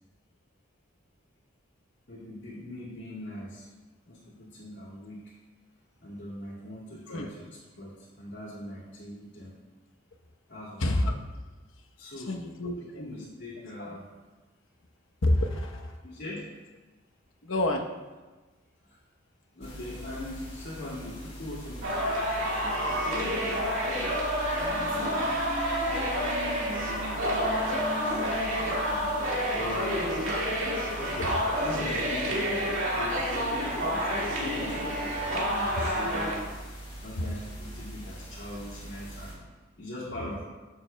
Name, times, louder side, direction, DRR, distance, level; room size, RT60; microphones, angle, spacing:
voice 1, 2.1-3.7 4.1-5.3 6.0-9.5 10.5-11.1 12.0-12.4 12.8-14.1 16.0-16.5 18.8-19.0 19.5-23.7 24.6-25.4 26.4-30.1 30.9-36.5 37.0-39.4 39.8-40.5, left 1 dB, 60° left, -8 dB, 2.1 m, -42 dB
voice 2, 10.8-11.2 12.1-13.0 13.8-14.0 15.2-16.0 17.4-17.9 31.2-31.3 37.2-37.3, left 1 dB, 75° left, 3 dB, 0.9 m, -28 dB
sound 1, 19.6-39.3, right 1 dB, 30° left, 2.7 m, -43 dB
sound 2, 21.8-36.4, equal, 80° right, 2.0 m, -29 dB
sound 3, 24.5-30.5, left 1 dB, 45° right, 1.9 m, -42 dB
14.0 x 6.8 x 2.2 m, 1.2 s
head